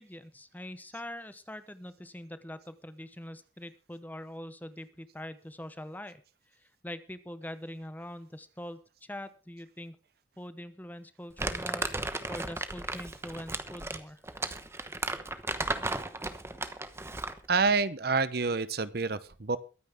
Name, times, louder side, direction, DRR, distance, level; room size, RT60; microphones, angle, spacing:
voice 1, 0.0-6.2 6.5-10.0 10.4-14.2, left 1 dB, 10° left, 12 dB, 0.9 m, -43 dB
Crumpling crinkling, 11.4-17.4, right 2 dB, 15° right, 1.0 m, -35 dB
voice 2, 17.5-19.6, right 4 dB, 55° right, 15 dB, 0.9 m, -27 dB
23.0 x 9.5 x 3.6 m, 0.34 s
head